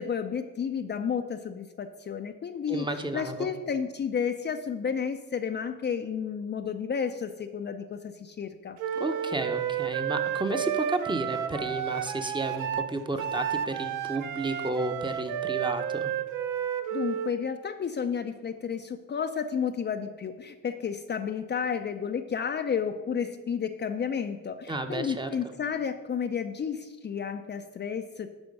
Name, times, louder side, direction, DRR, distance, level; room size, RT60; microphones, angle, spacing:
voice 1, 0.0-2.9 3.1-8.8 16.9-28.3, left 7 dB, 35° left, 7 dB, 0.5 m, -32 dB
voice 2, 2.7-3.5 9.0-16.1 24.7-25.3, right 2 dB, 15° right, 7 dB, 0.9 m, -32 dB
Wind instrument woodwind instrument, 8.8-17.3, right 9 dB, 85° right, 0.7 m, -31 dB
11.5 x 4.3 x 5.4 m, 1.2 s
cardioid pair, 90°, 30 cm